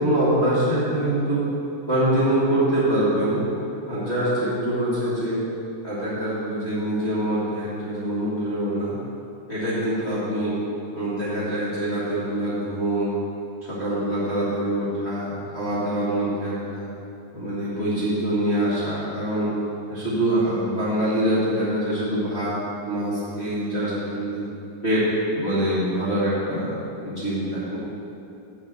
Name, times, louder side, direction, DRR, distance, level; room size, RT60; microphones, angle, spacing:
voice 1, 0.0-1.4 1.9-3.4 3.9-5.4 5.8-9.0 9.5-10.6 10.9-13.2 13.6-16.9 17.3-19.5 19.9-22.5 22.8-24.4 24.8-25.1 25.3-27.8, right 1 dB, 35° left, -11 dB, 1.0 m, -24 dB
6.8 x 6.5 x 7.5 m, 2.9 s
omnidirectional pair, 4.5 m